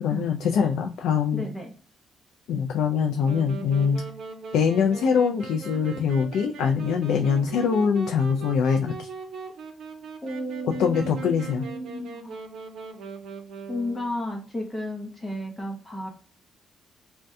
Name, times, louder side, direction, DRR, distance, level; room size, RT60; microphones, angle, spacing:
voice 1, 0.0-1.4 2.5-4.0 4.5-9.1 10.6-11.7, left 6 dB, 85° left, 3 dB, 0.3 m, -23 dB
voice 2, 1.3-1.7 10.2-12.4 13.7-16.1, equal, 20° left, 1 dB, 0.7 m, -33 dB
Wind instrument woodwind instrument, 3.2-14.2, right 5 dB, 70° right, 0.6 m, -40 dB
2.6 x 2.2 x 3.4 m, 0.39 s
cardioid pair, 90°, 0 cm